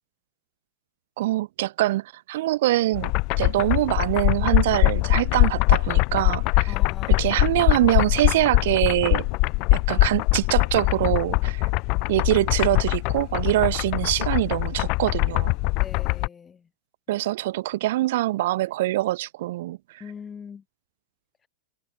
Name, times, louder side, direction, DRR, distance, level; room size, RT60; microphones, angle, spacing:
voice 1, 1.2-3.1 3.4-6.7 7.1-9.3 9.7-11.7 12.1-15.5 17.1-19.8, right 16 dB, 65° right, 3.5 m, -24 dB
sound 1, 2.9-16.3, left 27 dB, 50° left, 2.0 m, -22 dB
voice 2, 6.7-7.3 15.8-16.7 17.1-17.2 20.0-20.6, left 6 dB, 20° left, 6.5 m, -42 dB
hypercardioid pair, 120°, 0 cm